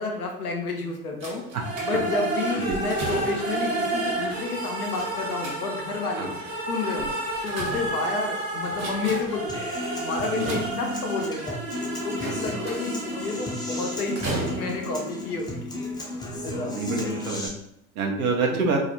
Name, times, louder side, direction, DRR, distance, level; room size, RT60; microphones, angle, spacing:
voice 1, 0.0-1.4 1.8-6.3 6.7-7.1 7.4-9.7 10.0-11.6 12.0-15.7 16.4-16.8 18.5-18.7, left 3 dB, 90° left, 1 dB, 0.5 m, -30 dB
sound 1, 1.2-2.2 2.7-3.6 5.0-6.0 7.0-8.3 8.7-9.5 10.2-11.2 12.2-13.0 14.2-15.0 15.8-15.9 16.3-16.4, right 2 dB, 55° right, 1.1 m, -36 dB
sound 2, 1.5-15.4, right 2 dB, 35° right, 0.9 m, -31 dB
Human voice / Acoustic guitar, 9.5-17.5, left 1 dB, 10° left, 0.4 m, -34 dB
voice 2, 16.5-17.5 18.0-18.8, right 4 dB, 75° right, 1 dB, 0.7 m, -27 dB
2.4 x 2.0 x 2.8 m, 0.77 s
figure-of-eight pair, 70°, 43 cm